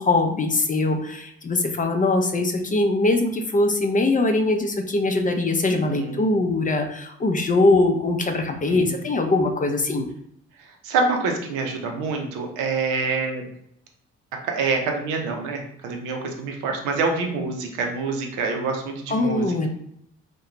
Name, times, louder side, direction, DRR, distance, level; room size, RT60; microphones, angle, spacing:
voice 1, 0.0-10.1 19.1-19.7, left 2 dB, 25° left, 5 dB, 0.5 m, -22 dB
voice 2, 5.9-6.2 8.7-9.0 10.8-13.4 14.5-19.7, right 4 dB, 85° right, 3 dB, 0.5 m, -26 dB
2.4 x 2.2 x 2.9 m, 0.73 s
hypercardioid pair, 45°, 30 cm